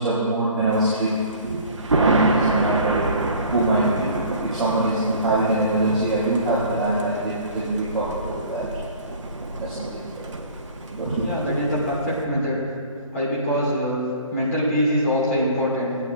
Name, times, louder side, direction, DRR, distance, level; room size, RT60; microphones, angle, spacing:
voice 1, 0.0-1.6 1.9-3.2 3.5-8.8 9.6-10.3 10.9-11.6, right 2 dB, ahead, -21 dB, 1.8 m, -24 dB
Thunder, 0.7-12.2, right 2 dB, 60° right, 1.0 m, -28 dB
voice 2, 11.2-12.6 13.1-16.0, equal, 30° left, -7 dB, 2.4 m, -23 dB
15.5 x 9.3 x 2.2 m, 2.4 s
figure-of-eight pair, 165°, 18 cm